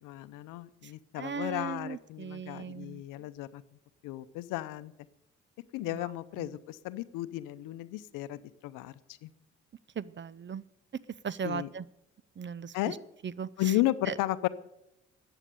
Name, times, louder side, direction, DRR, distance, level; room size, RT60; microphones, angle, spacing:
voice 1, 0.0-3.6 4.0-4.9 5.7-8.9 9.2-9.3 11.4-11.7 12.7-13.0 13.6-14.5, left 15 dB, 80° left, 15 dB, 0.7 m, -34 dB
voice 2, 1.1-3.0 6.4-6.5 10.0-10.6 11.2-11.8 12.4-12.9 13.4-13.5 14.1-14.2, right 6 dB, 35° right, 21 dB, 0.6 m, -37 dB
14.0 x 9.0 x 6.8 m, 0.84 s
supercardioid pair, 55°, 32 cm